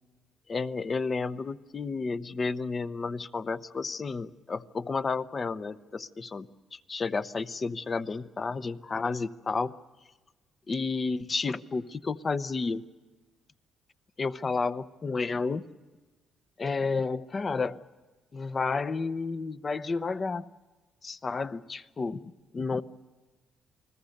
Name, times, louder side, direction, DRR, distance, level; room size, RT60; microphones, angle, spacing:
voice 1, 0.5-6.5 6.7-9.7 10.7-12.8 14.2-15.6 16.6-17.8 18.3-20.5 21.0-22.8, left 4 dB, 35° left, 13 dB, 0.8 m, -31 dB
29.5 x 20.5 x 6.6 m, 1.2 s
cardioid pair, 90°, 0 cm